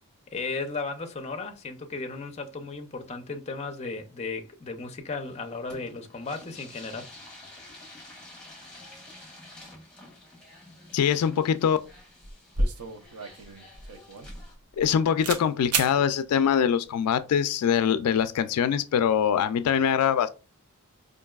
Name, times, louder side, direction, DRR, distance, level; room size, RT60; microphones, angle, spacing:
voice 1, 0.3-7.1, left 3 dB, 30° left, 0.5 m, -35 dB
sound 1, 5.3-14.5, left 1 dB, 5° left, 1.1 m, -49 dB
voice 2, 10.9-11.8 14.8-20.3, left 8 dB, 85° left, 0.3 m, -23 dB
sound 2, 11.8-12.0 12.2-14.9 15.2-15.4 15.7-15.9, right 3 dB, 85° right, 0.6 m, -30 dB
4.6 x 2.5 x 2.3 m
head